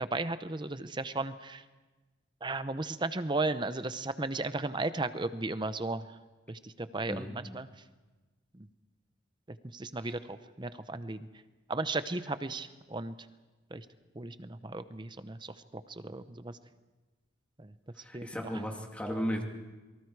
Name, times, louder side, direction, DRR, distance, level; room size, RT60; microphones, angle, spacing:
voice 1, 0.0-1.6 2.4-6.1 6.5-7.7 8.5-8.7 9.5-11.2 11.7-13.1 13.7-13.9 14.1-16.6 17.6-17.7 18.1-18.5, right 2 dB, 25° right, 12 dB, 0.8 m, -35 dB
voice 2, 7.1-7.4 18.0-19.4, equal, 5° left, 1 dB, 2.4 m, -35 dB
28.0 x 23.5 x 4.8 m, 1.2 s
head